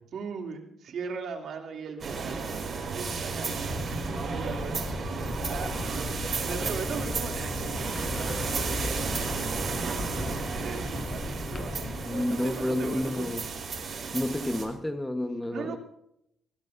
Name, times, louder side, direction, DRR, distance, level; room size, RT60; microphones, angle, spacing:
voice 1, 0.0-2.4 2.9-13.6 15.5-15.8, right 5 dB, 65° right, 3 dB, 2.9 m, -39 dB
sound 1, 2.0-14.6, right 4 dB, 50° right, 5.3 m, -33 dB
sound 2, 3.7-12.1, left 4 dB, 30° left, 0.6 m, -37 dB
voice 2, 12.0-13.4 14.1-15.8, left 1 dB, 10° left, 6 dB, 1.2 m, -30 dB
23.5 x 16.5 x 2.7 m, 0.77 s
cardioid pair, 90°, 0 cm